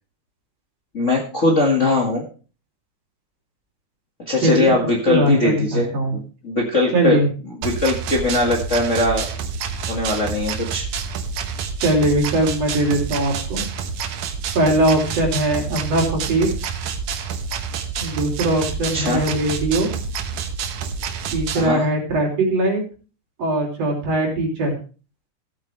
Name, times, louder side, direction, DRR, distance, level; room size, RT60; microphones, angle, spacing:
voice 1, 0.9-2.2 4.3-5.9 6.4-7.2 7.6-9.3 9.9-10.9 18.9-19.3 21.5-21.8, left 2 dB, 30° left, -1 dB, 1.7 m, -20 dB
voice 2, 4.4-4.7 5.1-6.2 6.9-7.3 11.8-13.6 14.6-16.5 18.0-19.9 21.3-22.8 23.4-24.7, right 1 dB, 55° right, 1 dB, 4.1 m, -20 dB
sound 1, 7.6-21.7, right 6 dB, 85° right, 2.6 m, -28 dB
15.5 x 8.8 x 3.3 m, 0.36 s
omnidirectional pair, 3.4 m